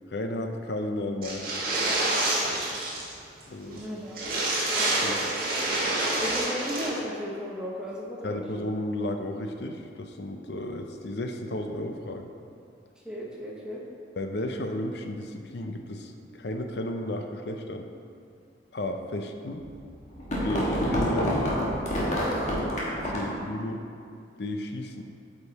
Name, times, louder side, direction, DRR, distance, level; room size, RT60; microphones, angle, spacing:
voice 1, 0.1-1.4 3.5-3.8 5.0-5.2 8.2-12.3 14.2-17.9 18.7-19.6 20.4-21.6 23.0-23.8 24.4-25.1, left 1 dB, 60° left, 4 dB, 0.6 m, -33 dB
sound 1, 1.2-3.1 3.4-3.5 3.8-3.9 4.1-6.9, right 2 dB, 55° right, 1.6 m, -27 dB
voice 2, 3.6-4.3 6.2-8.7 13.0-13.8, equal, 5° right, -4 dB, 1.0 m, -36 dB
sound 2, 19.6-23.4, equal, 40° left, 1.4 m, -27 dB
8.2 x 5.2 x 4.1 m, 2.4 s
head